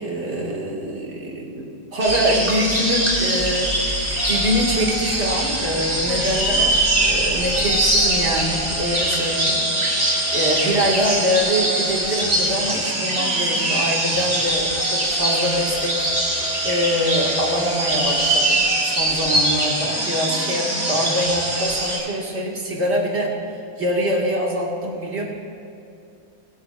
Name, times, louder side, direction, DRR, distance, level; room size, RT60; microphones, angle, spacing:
voice 1, 0.0-9.6 9.9-10.0 10.3-16.1 16.6-23.4 23.8-25.2, equal, 45° right, -3 dB, 2.3 m, -24 dB
sound 1, 2.0-22.0, right 1 dB, 25° right, 2.1 m, -22 dB
sound 2, 2.1-8.9, left 2 dB, 25° left, 1.5 m, -34 dB
sound 3, 4.2-21.8, equal, 5° right, 0.7 m, -36 dB
21.0 x 11.0 x 2.6 m, 2.7 s
omnidirectional pair, 1.7 m